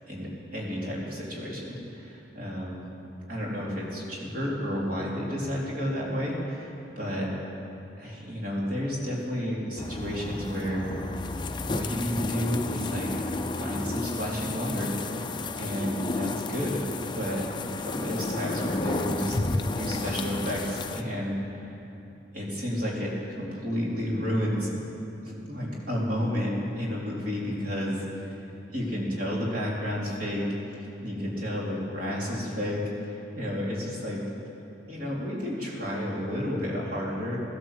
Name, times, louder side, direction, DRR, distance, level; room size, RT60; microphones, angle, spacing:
voice 1, 0.1-2.8 3.3-7.3 8.0-10.9 11.7-16.8 17.1-17.5 17.7-19.4 19.8-21.8 22.3-24.7 25.2-28.3 28.7-34.2 34.9-37.4, equal, 45° right, -4 dB, 3.4 m, -31 dB
sound 1, 9.8-21.0, left 2 dB, 25° left, 0.5 m, -32 dB
15.5 x 12.0 x 7.5 m, 2.8 s
head